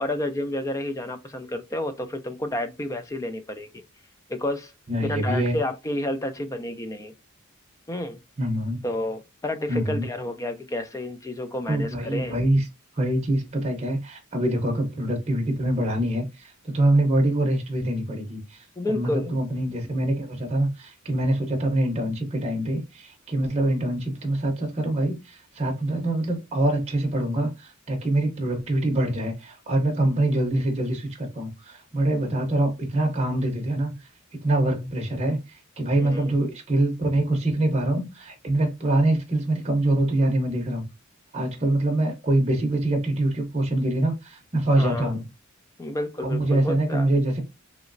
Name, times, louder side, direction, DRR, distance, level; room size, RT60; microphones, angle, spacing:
voice 1, 0.0-3.8 4.3-4.7 5.0-7.1 7.9-8.2 8.8-12.4 18.8-19.3 36.0-36.4 44.8-45.2 45.8-47.1, left 1 dB, 15° left, 0.4 m, -30 dB
voice 2, 4.9-5.6 8.4-8.8 9.7-10.1 11.7-12.6 12.9-40.9 41.3-45.2 46.2-47.4, right 1 dB, 30° right, 0.7 m, -25 dB
3.0 x 3.0 x 2.5 m
head